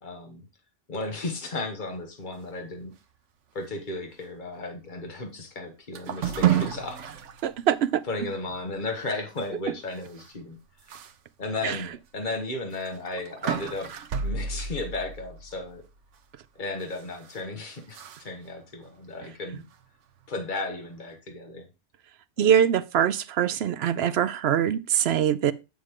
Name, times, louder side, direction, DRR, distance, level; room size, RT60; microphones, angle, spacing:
voice 1, 0.0-0.4 0.9-2.9 3.5-7.1 8.1-10.6 11.4-13.9 14.2-15.8 16.5-19.6 20.3-21.7 22.4-22.5, left 2 dB, 40° left, 1.6 m, -34 dB
sound 1, 5.9-7.5 7.9-8.0 8.4-8.6 10.2-10.3 10.9-11.1 11.6-11.7 12.7-15.9 16.8-17.4 17.9-18.2, right 9 dB, 85° right, 1.1 m, -30 dB
voice 2, 7.4-8.0 11.6-11.8 22.4-25.5, right 9 dB, 65° right, 0.8 m, -23 dB
7.7 x 7.2 x 3.7 m
omnidirectional pair, 1.2 m